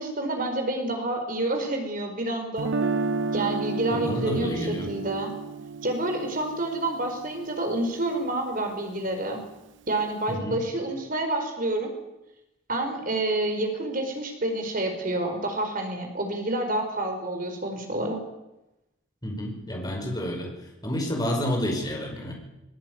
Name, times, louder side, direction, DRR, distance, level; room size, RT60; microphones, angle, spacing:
voice 1, 0.0-2.7 3.3-5.3 5.8-9.4 9.9-11.9 12.7-18.2, right 1 dB, 45° right, 4 dB, 5.0 m, -28 dB
Guitar, 2.6-8.6, right 4 dB, 70° right, 0.9 m, -32 dB
voice 2, 3.9-4.9 10.3-10.6 19.2-20.5 20.8-22.3, left 1 dB, 20° left, 1 dB, 5.4 m, -29 dB
20.0 x 19.5 x 9.6 m, 0.94 s
head